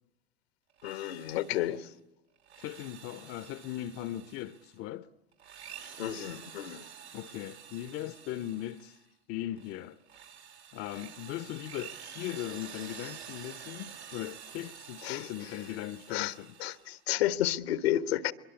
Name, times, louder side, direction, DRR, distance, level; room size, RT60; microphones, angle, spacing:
Drill, 0.7-1.8 2.4-4.7 5.3-9.0 9.5-17.0, right 8 dB, 85° right, 3.5 m, -49 dB
voice 1, 0.8-1.9 6.0-6.9 15.0-15.5 16.1-16.3 16.6-18.3, left 13 dB, 70° left, 1.4 m, -31 dB
voice 2, 2.6-5.1 7.1-9.0 9.3-10.0 10.7-16.5, left 13 dB, 45° left, 1.0 m, -39 dB
24.5 x 23.0 x 8.4 m
hypercardioid pair, 85°, 32 cm